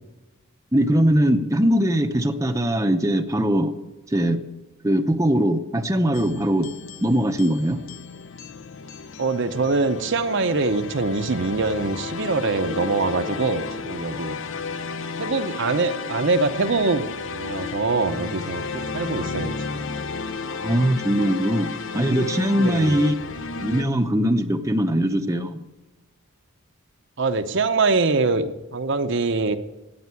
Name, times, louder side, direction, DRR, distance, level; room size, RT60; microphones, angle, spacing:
voice 1, 0.7-3.7 4.1-4.4 4.8-6.7 7.0-7.8 20.5-23.1 23.6-25.6, equal, 15° right, 5 dB, 0.7 m, -21 dB
sound 1, 6.1-23.8, left 4 dB, 55° left, 0.6 m, -33 dB
voice 2, 9.2-14.4 15.2-19.5 22.6-23.0 27.2-29.6, right 3 dB, 55° right, 8 dB, 0.7 m, -23 dB
14.0 x 9.4 x 9.7 m, 1.1 s
head